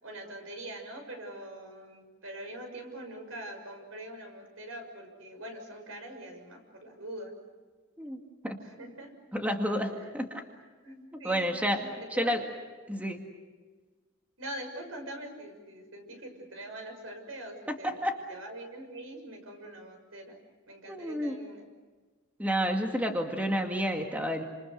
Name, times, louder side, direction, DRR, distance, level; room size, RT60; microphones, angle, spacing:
voice 1, 0.0-7.3 8.8-9.1 9.9-10.1 10.8-11.5 12.1-12.3 14.4-18.0 18.3-20.4 20.7-21.7, right 1 dB, 80° right, 5 dB, 6.3 m, -43 dB
voice 2, 8.0-8.6 9.3-10.4 11.2-12.4 12.9-13.2 17.7-18.2 20.9-21.4 22.4-24.4, equal, 10° right, 3 dB, 2.1 m, -30 dB
28.5 x 27.0 x 6.6 m, 1.4 s
head